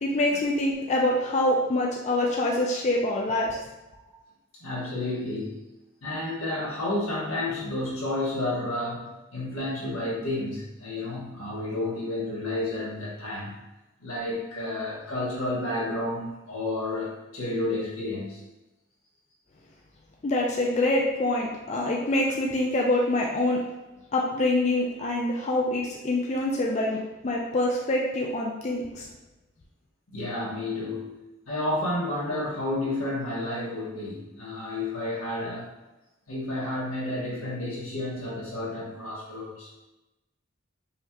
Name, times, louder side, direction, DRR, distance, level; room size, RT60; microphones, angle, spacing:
voice 1, 0.0-3.6 20.2-23.6 24.1-27.0 27.2-29.1, left 1 dB, 35° left, -1 dB, 0.4 m, -25 dB
voice 2, 4.6-5.6 6.0-13.5 14.0-18.4 30.1-31.1 31.5-35.7 36.3-39.7, left 1 dB, 85° left, -5 dB, 1.3 m, -31 dB
5.5 x 2.8 x 2.3 m, 1.0 s
head